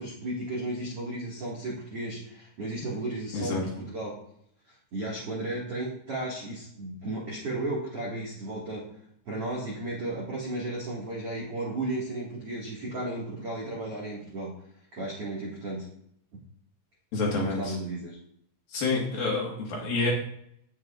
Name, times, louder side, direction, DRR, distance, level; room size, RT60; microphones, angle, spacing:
voice 1, 0.0-4.1 4.9-8.9 9.2-14.5 14.9-15.9 17.3-18.2, right 2 dB, 60° right, -5 dB, 1.5 m, -34 dB
voice 2, 3.3-3.6 17.1-17.8 18.7-20.1, left 3 dB, 60° left, -2 dB, 2.8 m, -28 dB
17.0 x 7.6 x 2.5 m, 0.70 s
omnidirectional pair, 5.6 m